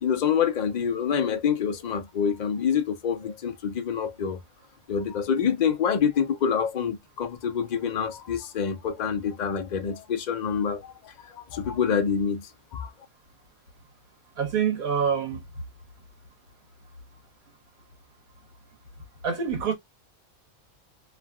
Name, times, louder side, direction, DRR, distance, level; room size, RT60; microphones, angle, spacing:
voice 1, 0.0-4.4 4.9-12.9, left 7 dB, 65° left, 0.4 m, -27 dB
voice 2, 14.4-15.4 19.2-19.7, right 7 dB, 85° right, 1.6 m, -26 dB
3.1 x 2.5 x 2.3 m
omnidirectional pair, 1.5 m